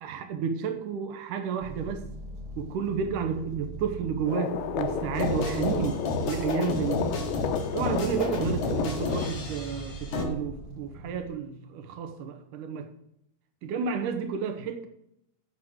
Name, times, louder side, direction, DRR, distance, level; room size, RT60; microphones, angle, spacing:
voice 1, 0.0-2.1 2.6-7.2 7.7-12.9 13.6-14.9, right 6 dB, 70° right, 2.1 m, -31 dB
sound 1, 1.6-11.2, right 4 dB, 45° right, 1.7 m, -41 dB
sound 2, 4.3-9.3, left 8 dB, 80° left, 2.7 m, -31 dB
sound 3, 5.1-10.3, left 2 dB, 60° left, 1.3 m, -33 dB
8.6 x 7.5 x 6.4 m
omnidirectional pair, 4.6 m